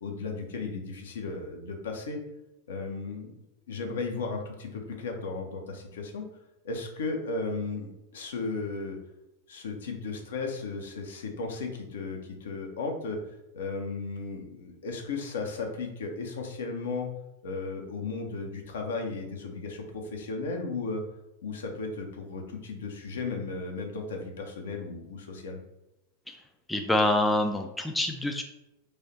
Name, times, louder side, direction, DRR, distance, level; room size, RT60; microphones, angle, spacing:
voice 1, 0.0-2.2 2.7-3.4 3.7-6.3 6.6-9.0 9.5-13.2 13.5-17.1 17.4-21.0 21.4-25.6, left 3 dB, 60° left, 3 dB, 0.7 m, -35 dB
voice 2, 26.7-28.4, left 1 dB, 5° left, 4 dB, 0.4 m, -26 dB
3.3 x 2.7 x 4.2 m, 0.92 s
figure-of-eight pair, 90°, 0 cm